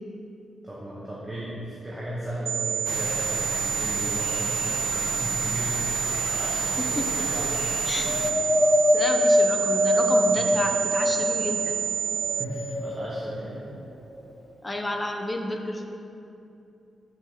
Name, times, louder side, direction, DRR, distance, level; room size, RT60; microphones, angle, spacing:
voice 1, 0.6-7.6 10.4-10.6 12.3-13.7, equal, 10° right, -8 dB, 1.0 m, -36 dB
sound 1, 2.5-12.5, right 8 dB, 85° right, 0.5 m, -28 dB
sound 2, 2.9-8.3, left 5 dB, 80° left, 0.4 m, -34 dB
voice 2, 6.8-7.1 7.9-8.5 8.9-11.8 14.6-15.9, left 1 dB, 15° left, 3 dB, 0.6 m, -31 dB
Wind, 8.0-11.6 12.1-13.2 13.9-14.0, left 1 dB, 45° left, 1.2 m, -23 dB
6.4 x 5.0 x 6.1 m, 2.7 s
wide cardioid pair, 180°, 0 cm